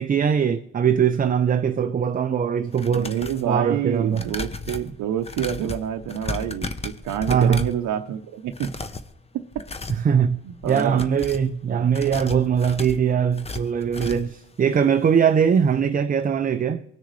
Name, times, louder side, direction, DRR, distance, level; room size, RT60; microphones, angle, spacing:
voice 1, 0.0-3.2 3.5-4.2 7.3-7.7 9.9-16.8, right 7 dB, 30° right, 0.4 m, -21 dB
sound 1, 2.7-3.5 4.1-7.8 8.5-9.1 9.5-10.1 10.5-11.5 11.9-14.4 14.7-14.8 15.2-15.3, left 3 dB, 20° left, 0.7 m, -34 dB
voice 2, 2.9-8.7 9.3-9.6 10.4-11.0 11.7-11.9, right 10 dB, 80° right, 0.7 m, -28 dB
19.0 x 6.5 x 3.2 m
cardioid pair, 90°, 30 cm